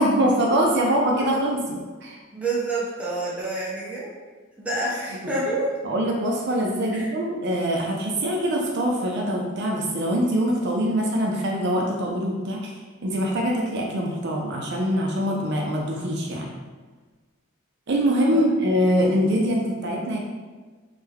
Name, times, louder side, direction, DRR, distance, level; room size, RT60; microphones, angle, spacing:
voice 1, 0.0-2.2 5.8-12.7 13.0-16.5 17.9-20.2, equal, 55° right, -1 dB, 0.5 m, -23 dB
voice 2, 2.3-4.1 4.6-5.7 6.9-7.1 18.3-18.4, right 2 dB, 5° right, -6 dB, 0.6 m, -28 dB
3.2 x 2.2 x 3.5 m, 1.4 s
head